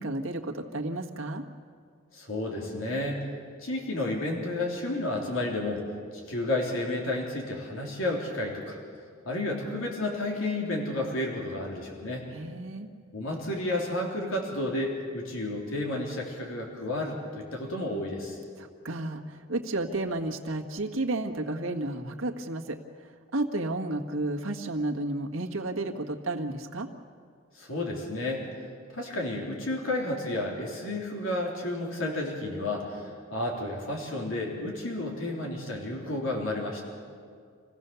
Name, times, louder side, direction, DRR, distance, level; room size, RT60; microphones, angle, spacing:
voice 1, 0.0-1.4 12.3-12.9 18.6-26.9, right 2 dB, 80° right, 3 dB, 1.6 m, -32 dB
voice 2, 2.1-3.2 3.6-8.8 9.3-12.3 13.1-18.4 27.6-28.4 28.9-36.8, left 1 dB, 85° left, -1 dB, 3.5 m, -31 dB
27.5 x 17.0 x 7.0 m, 2.1 s
head